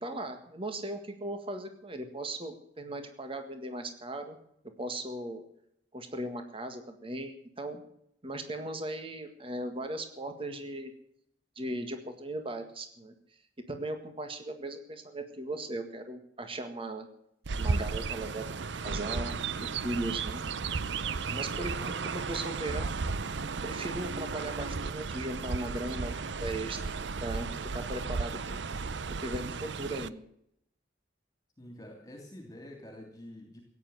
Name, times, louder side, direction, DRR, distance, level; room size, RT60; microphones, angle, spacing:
voice 1, 0.0-4.4 4.8-5.4 5.9-7.8 8.2-10.9 11.6-13.1 13.7-17.1 17.6-20.4 21.3-22.9 23.6-27.5 27.7-28.6 29.2-30.3, right 1 dB, 30° right, 7 dB, 1.8 m, -38 dB
Chirp tweet, 17.4-30.1, right 4 dB, 70° right, 0.7 m, -34 dB
voice 2, 31.6-33.6, left 1 dB, 20° left, 2 dB, 2.9 m, -47 dB
17.0 x 9.7 x 7.8 m, 0.73 s
head